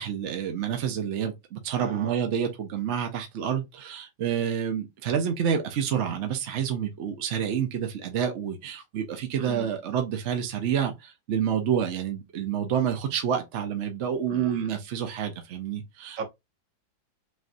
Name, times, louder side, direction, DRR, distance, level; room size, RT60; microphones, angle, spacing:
voice 1, 0.0-16.2, right 8 dB, 75° right, 0.6 m, -28 dB
voice 2, 1.8-2.2 9.4-9.7 14.3-14.7 16.2-16.3, right 5 dB, 55° right, 1.0 m, -38 dB
6.1 x 2.5 x 2.6 m
omnidirectional pair, 2.1 m